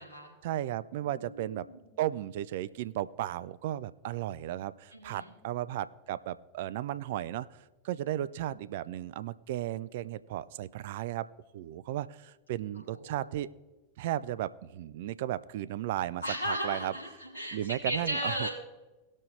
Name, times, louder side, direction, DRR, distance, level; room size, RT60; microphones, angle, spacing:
voice 1, 0.4-1.7 2.0-7.5 7.8-11.3 11.5-13.5 14.0-16.9 17.5-18.5, right 13 dB, 55° right, 17 dB, 0.4 m, -35 dB
voice 2, 1.0-1.8 4.9-5.3 12.9-13.3 16.2-18.5, equal, 85° left, -4 dB, 3.7 m, -36 dB
19.0 x 6.4 x 3.2 m, 1.1 s
figure-of-eight pair, 90°, 0 cm